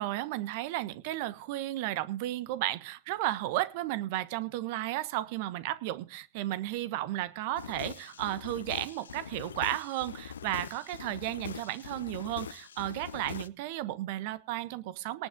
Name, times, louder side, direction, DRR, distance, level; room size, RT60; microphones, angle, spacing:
voice 1, 0.0-15.3, right 15 dB, 55° right, 15 dB, 1.2 m, -34 dB
sound 1, 7.5-13.5, left 8 dB, 75° left, 0.6 m, -43 dB
19.0 x 8.4 x 3.8 m, 0.32 s
figure-of-eight pair, 85°, 0 cm